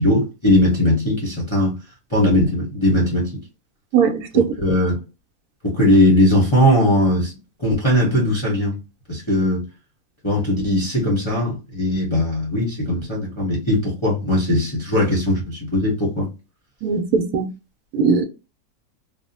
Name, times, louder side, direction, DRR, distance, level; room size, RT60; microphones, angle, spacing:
voice 1, 0.0-1.7 2.1-3.3 4.6-5.0 5.6-7.3 7.6-8.8 9.1-9.6 10.2-16.3, left 1 dB, 30° left, 0.5 m, -19 dB
voice 2, 3.9-4.4 16.8-17.4 17.9-18.3, right 6 dB, 75° right, 1.1 m, -18 dB
2.6 x 2.0 x 2.6 m
omnidirectional pair, 1.7 m